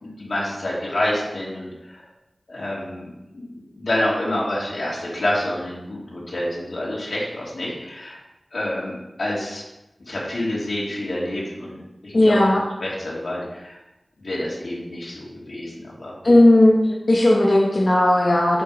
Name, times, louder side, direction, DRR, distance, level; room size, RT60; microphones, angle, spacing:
voice 1, 0.0-2.0 2.5-8.2 8.5-8.9 9.2-9.6 10.1-11.8 12.0-13.8 14.2-16.1, left 1 dB, 80° left, -6 dB, 2.5 m, -28 dB
voice 2, 12.1-12.6 16.2-18.6, left 1 dB, 45° left, -4 dB, 1.1 m, -16 dB
7.5 x 3.7 x 5.1 m, 0.94 s
wide cardioid pair, 65°, 0 cm